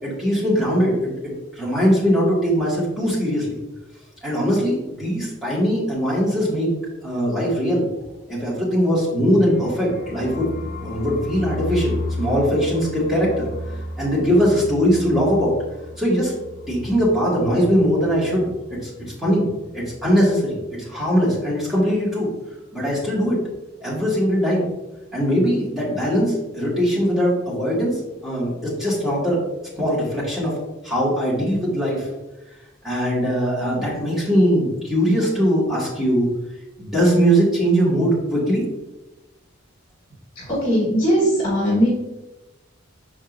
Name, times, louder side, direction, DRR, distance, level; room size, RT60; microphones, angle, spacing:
voice 1, 0.0-3.6 4.2-6.7 7.0-7.9 8.3-10.5 10.8-13.5 14.0-15.5 16.0-16.3 16.7-18.9 19.2-19.4 19.7-22.3 22.7-23.4 23.8-24.7 25.1-29.4 29.7-30.5 30.8-32.1 32.8-36.3 36.8-38.6, equal, ahead, -8 dB, 2.1 m, -21 dB
sound 1, 9.3-18.9 19.1-19.3 19.5-20.0, left 2 dB, 40° left, 0.8 m, -34 dB
voice 2, 40.4-41.9, equal, 25° left, -6 dB, 1.7 m, -19 dB
6.5 x 5.4 x 2.7 m, 1.0 s
head